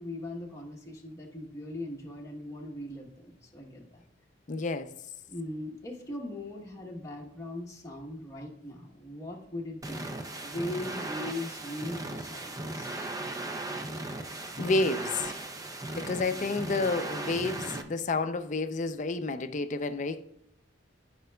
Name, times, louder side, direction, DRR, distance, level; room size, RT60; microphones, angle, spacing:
voice 1, 0.0-4.0 5.3-10.1 10.4-12.9 16.3-16.6, left 1 dB, 15° left, 1.0 m, -40 dB
voice 2, 4.5-4.9 14.6-15.3 16.0-20.2, left 3 dB, 40° left, 0.5 m, -30 dB
sound 1, 9.8-17.8, right 2 dB, 20° right, 0.5 m, -37 dB
13.0 x 5.2 x 2.3 m
head